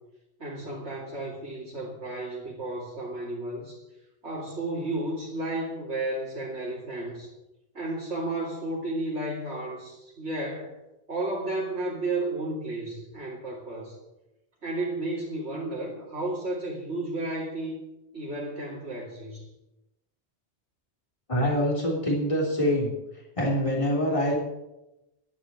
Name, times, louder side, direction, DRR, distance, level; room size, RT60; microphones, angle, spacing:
voice 1, 0.4-3.8 4.2-7.3 7.7-10.8 11.1-14.0 14.6-17.8 18.1-19.5, right 2 dB, 85° right, -4 dB, 3.1 m, -33 dB
voice 2, 21.3-22.9 23.4-24.4, equal, 30° left, -2 dB, 3.6 m, -25 dB
11.5 x 9.7 x 8.8 m, 0.95 s
omnidirectional pair, 1.1 m